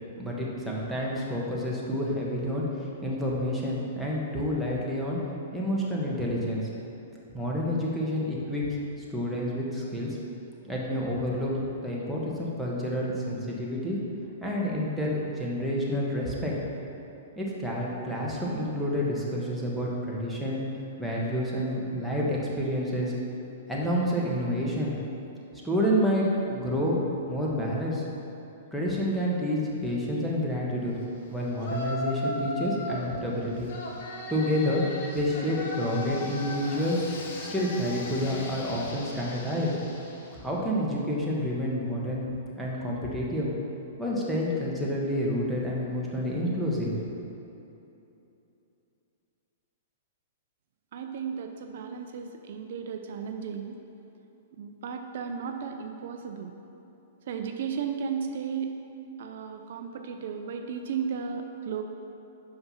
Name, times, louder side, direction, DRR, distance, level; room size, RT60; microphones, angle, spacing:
voice 1, 0.2-5.2 5.5-6.6 7.3-8.6 9.1-10.2 10.7-11.5 11.8-14.0 14.4-16.5 17.4-20.6 21.0-23.1 23.7-24.9 25.6-27.0 27.3-28.0 28.7-30.9 31.3-33.7 34.3-34.8 35.1-37.0 37.4-39.7 40.3-42.3 42.6-43.5 44.0-46.9, equal, ahead, -6 dB, 1.3 m, -29 dB
Yell, 31.6-33.1 33.7-40.4, left 1 dB, 60° left, 1.1 m, -37 dB
voice 2, 50.9-53.8 54.5-56.5 57.3-58.8 59.2-61.8, right 6 dB, 65° right, 5 dB, 0.5 m, -34 dB
5.6 x 5.4 x 5.7 m, 2.9 s
hypercardioid pair, 135°, 0 cm